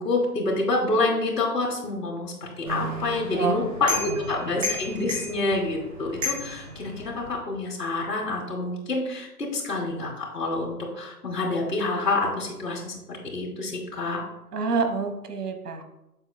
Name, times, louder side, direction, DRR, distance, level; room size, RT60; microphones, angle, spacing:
voice 1, 0.0-14.2, left 2 dB, 75° left, -3 dB, 2.6 m, -27 dB
sound 1, 2.7-7.4, left 2 dB, 25° right, 2.1 m, -33 dB
voice 2, 3.3-3.7 4.0-4.2 14.5-15.8, right 4 dB, 70° right, 8 dB, 1.2 m, -27 dB
8.5 x 7.1 x 2.2 m, 0.92 s
hypercardioid pair, 175°, 49 cm